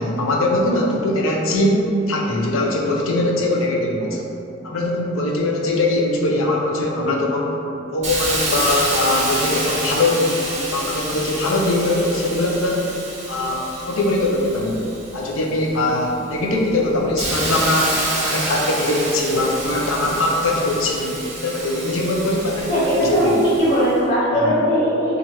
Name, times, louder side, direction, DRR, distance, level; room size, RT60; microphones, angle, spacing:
voice 1, 0.0-4.2 4.6-7.5 7.9-10.4 10.7-12.9 13.3-14.8 15.1-18.0 18.2-21.2 21.4-23.4 24.4-24.6, left 2 dB, 90° left, -1 dB, 0.6 m, -21 dB
Hiss, 8.0-15.6 16.1-23.9, right 2 dB, 35° right, 0.6 m, -28 dB
voice 2, 22.7-25.2, equal, 50° left, -14 dB, 1.5 m, -19 dB
2.9 x 2.5 x 4.3 m, 2.7 s
head